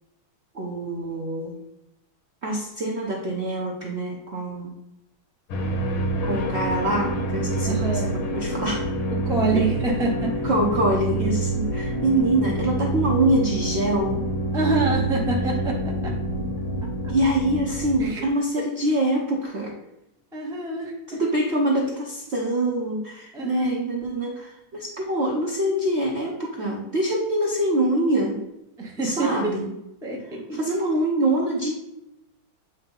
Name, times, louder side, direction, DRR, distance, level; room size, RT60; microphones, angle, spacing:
voice 1, 0.5-1.5 2.4-4.7 6.2-8.8 10.4-14.2 17.1-19.7 21.1-28.4 29.0-29.7 30.5-31.7, right 1 dB, 55° right, -3 dB, 0.7 m, -24 dB
sound 1, 5.5-18.1, right 1 dB, 85° left, 1.8 m, -27 dB
voice 2, 7.6-8.2 9.1-10.4 14.5-16.1 18.0-18.2 20.3-20.9 23.3-23.7 28.8-29.6 30.0-30.6, right 2 dB, 5° right, -2 dB, 0.4 m, -26 dB
7.9 x 2.7 x 5.3 m, 0.89 s
omnidirectional pair, 2.3 m